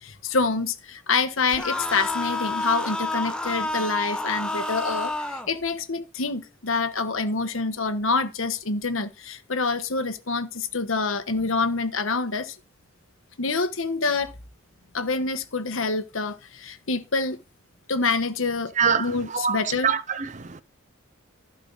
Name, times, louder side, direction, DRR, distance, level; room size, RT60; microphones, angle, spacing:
voice 1, 0.0-12.6 13.4-14.3 14.9-17.4 17.9-19.9, left 4 dB, 75° left, 1.3 m, -26 dB
sound 1, 1.5-5.5, left 2 dB, 5° left, 0.9 m, -29 dB
voice 2, 18.8-20.6, right 6 dB, 35° right, 0.6 m, -25 dB
15.0 x 5.5 x 4.0 m
head